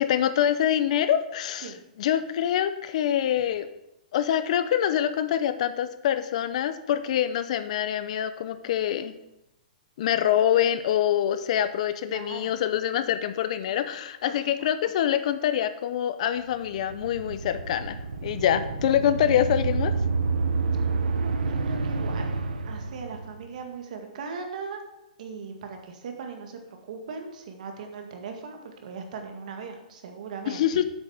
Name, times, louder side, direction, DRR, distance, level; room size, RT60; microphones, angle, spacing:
voice 1, 0.0-3.7 4.1-9.1 10.0-19.9 30.5-30.8, left 10 dB, 50° left, 11 dB, 0.7 m, -25 dB
voice 2, 12.1-12.5 14.2-14.7 21.2-22.3 22.6-24.8 25.2-26.6 26.9-30.7, right 5 dB, 60° right, 4 dB, 2.0 m, -39 dB
sound 1, 16.5-23.5, right 4 dB, 80° right, 1.0 m, -29 dB
8.2 x 6.5 x 6.4 m, 0.89 s
hypercardioid pair, 150°, 5 cm